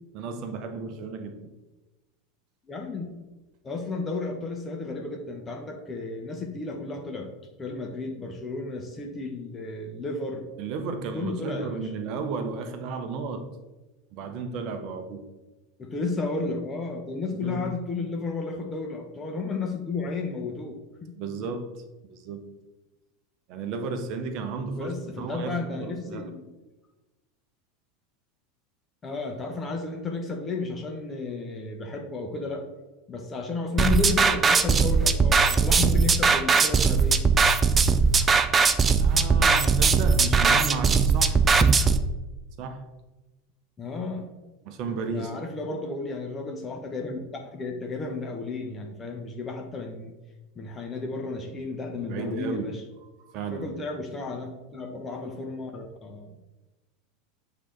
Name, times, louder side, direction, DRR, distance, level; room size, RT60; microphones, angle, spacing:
voice 1, 0.1-1.5 10.6-13.5 14.1-15.2 17.4-17.6 21.1-21.8 22.1-22.4 23.5-26.3 39.0-41.4 42.6-42.8 44.6-45.3 52.0-52.8 53.2-53.7, right 4 dB, 50° right, 8 dB, 0.8 m, -33 dB
voice 2, 2.7-3.2 3.6-7.3 7.6-10.5 11.1-11.9 15.8-21.1 24.7-26.5 29.0-32.6 33.1-37.2 43.8-44.4 45.1-50.1 50.5-52.8 53.5-56.3, left 3 dB, 25° left, 2 dB, 0.9 m, -33 dB
sound 1, 33.8-42.0, right 5 dB, 25° right, 0.4 m, -20 dB
8.1 x 2.9 x 4.5 m, 1.1 s
figure-of-eight pair, 80°, 0 cm